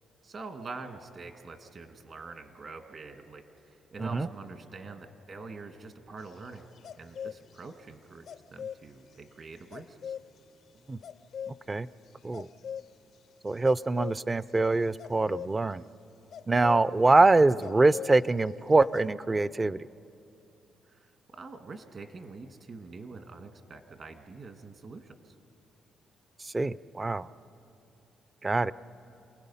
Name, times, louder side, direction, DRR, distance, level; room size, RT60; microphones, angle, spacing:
voice 1, 0.2-10.1 20.9-25.4, right 4 dB, 50° right, 6 dB, 1.8 m, -45 dB
sound 1, 6.2-7.7 8.3-8.9 9.7-10.4 11.0-11.9 12.2-12.9 13.5-14.2 15.0-15.5 16.3-16.8 17.6-18.4 18.7-19.1, left 8 dB, 60° left, 0.4 m, -40 dB
voice 2, 13.4-15.8 16.5-19.8 26.5-27.3 28.4-28.7, right 3 dB, 25° right, 18 dB, 0.4 m, -24 dB
28.5 x 19.5 x 5.6 m, 2.7 s
cardioid pair, 90°, 0 cm